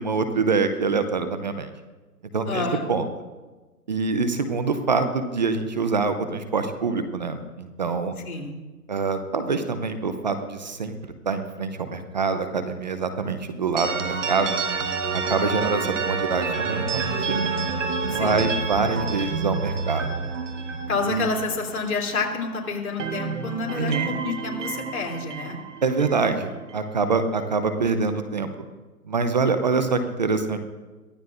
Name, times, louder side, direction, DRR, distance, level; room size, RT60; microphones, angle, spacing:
voice 1, 0.0-1.7 2.3-3.0 3.9-8.1 8.9-11.0 11.3-14.5 15.3-17.4 18.1-20.1 21.0-21.3 23.8-24.2 25.8-28.5 29.1-30.6, right 4 dB, 30° right, 9 dB, 0.7 m, -25 dB
voice 2, 2.5-2.9 8.2-8.6 18.1-18.5 20.9-25.6, left 4 dB, 60° left, -1 dB, 3.3 m, -29 dB
sound 1, 13.8-22.5 22.8-26.9, right 4 dB, 50° right, 1.3 m, -29 dB
22.5 x 14.0 x 2.6 m, 1.2 s
hypercardioid pair, 160°, 47 cm